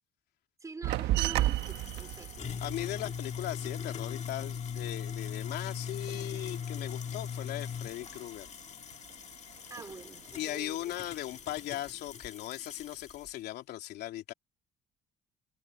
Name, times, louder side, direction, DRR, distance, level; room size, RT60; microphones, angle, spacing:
voice 1, 0.6-2.4 9.7-11.0, right 3 dB, 20° right, 4.3 m, -46 dB
sound 1, 0.8-5.8 6.1-7.5 7.7-8.6 8.9-10.3 10.7-11.3, right 15 dB, 85° right, 1.4 m, -35 dB
sound 2, 1.3-13.3, left 7 dB, 40° left, 1.9 m, -40 dB
voice 2, 2.6-8.5 10.4-14.3, left 14 dB, 75° left, 3.1 m, -38 dB
cardioid pair, 110°, 17 cm